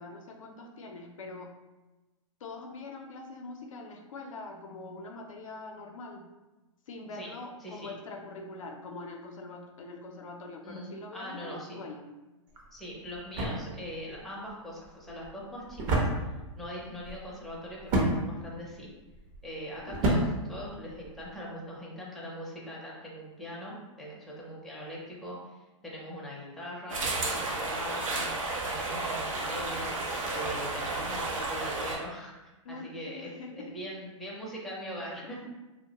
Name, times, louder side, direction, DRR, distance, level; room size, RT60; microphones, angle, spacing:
voice 1, 0.0-1.5 2.4-6.2 6.9-12.1 32.6-33.7 35.0-35.5, left 3 dB, 85° left, 2 dB, 0.5 m, -43 dB
voice 2, 7.6-8.0 10.6-11.8 12.7-16.1 16.6-18.9 19.4-28.3 28.7-29.9 30.3-35.4, equal, ahead, -5 dB, 0.5 m, -41 dB
sound 1, 12.5-21.3, right 1 dB, 45° right, 0.6 m, -33 dB
sound 2, 26.9-32.0, right 2 dB, 85° right, 0.6 m, -32 dB
2.2 x 2.0 x 2.8 m, 1.1 s
hypercardioid pair, 125°, 16 cm